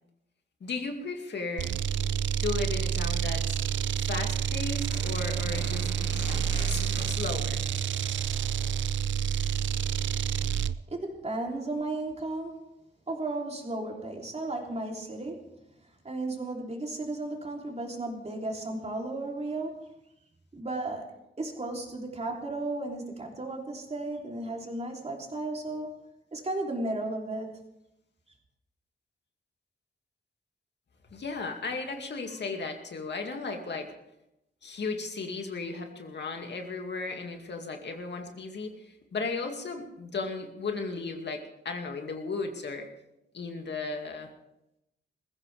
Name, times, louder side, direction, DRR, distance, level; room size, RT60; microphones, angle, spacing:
voice 1, 0.6-1.7 2.4-3.6 4.0-5.9 6.7-8.0 31.1-33.9 34.6-42.9 43.3-44.3, left 4 dB, 65° left, 3 dB, 2.3 m, -35 dB
sound 1, 1.6-10.8, right 8 dB, 80° right, 0.5 m, -29 dB
sound 2, 4.6-8.8, left 2 dB, 80° left, 4.4 m, -44 dB
voice 2, 10.9-12.7 13.1-15.5 16.0-19.9 20.5-21.1 21.4-25.9 26.3-27.5, right 2 dB, 35° right, 0 dB, 3.4 m, -34 dB
21.0 x 15.0 x 3.5 m, 0.87 s
cardioid pair, 90°, 19 cm